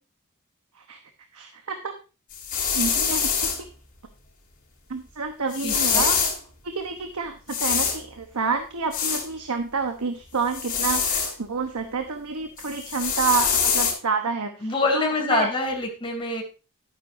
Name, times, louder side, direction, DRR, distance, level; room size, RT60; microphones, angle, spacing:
voice 1, 1.3-2.0 2.7-3.7 4.9-6.3 6.6-15.5, right 5 dB, 90° right, 6 dB, 1.0 m, -29 dB
sound 1, 2.3-3.6 5.5-6.4 7.5-8.0 8.9-9.3 10.5-11.3 12.6-13.9, left 6 dB, 40° left, 4.2 m, -24 dB
voice 2, 5.6-6.1 14.6-16.4, left 3 dB, 25° left, 0 dB, 3.0 m, -26 dB
11.5 x 9.6 x 2.6 m, 0.32 s
head